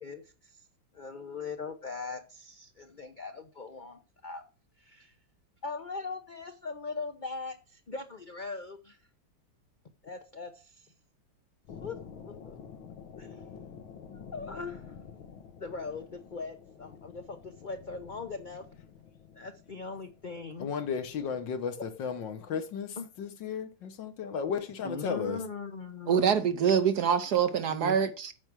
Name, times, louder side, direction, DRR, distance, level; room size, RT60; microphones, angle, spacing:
voice 1, 0.0-0.6 0.9-4.4 4.8-5.1 5.6-9.0 10.0-10.9 11.8-12.0 12.2-12.6 13.2-13.4 14.1-14.9 15.6-18.7 19.3-20.7 23.0-23.1 24.8-26.4 27.7-28.0, left 4 dB, 40° left, 0.7 m, -40 dB
sound 1, 11.6-21.6, left 7 dB, 85° left, 1.9 m, -49 dB
voice 2, 20.6-25.4, left 6 dB, 65° left, 1.8 m, -34 dB
voice 3, 26.1-28.3, right 7 dB, 65° right, 1.2 m, -25 dB
8.9 x 6.0 x 6.2 m
omnidirectional pair, 2.2 m